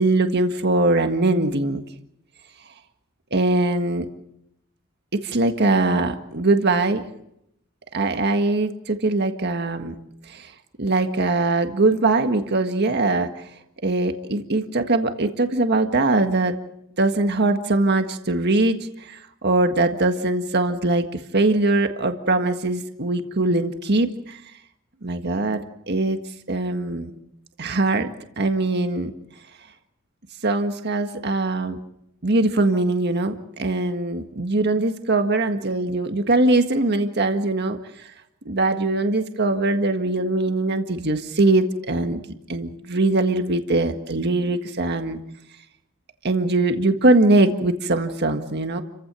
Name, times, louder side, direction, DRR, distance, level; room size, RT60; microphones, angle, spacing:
voice 1, 0.0-1.8 3.3-4.1 5.1-7.1 7.9-9.9 10.3-10.5 10.8-13.4 13.8-16.5 17.0-24.4 25.0-26.2 26.5-27.1 27.6-29.1 30.4-31.8 32.2-37.8 38.4-42.2 42.5-45.2 46.2-48.8, right 2 dB, 55° right, 7 dB, 1.7 m, -21 dB
30.0 x 15.5 x 7.7 m, 0.78 s
head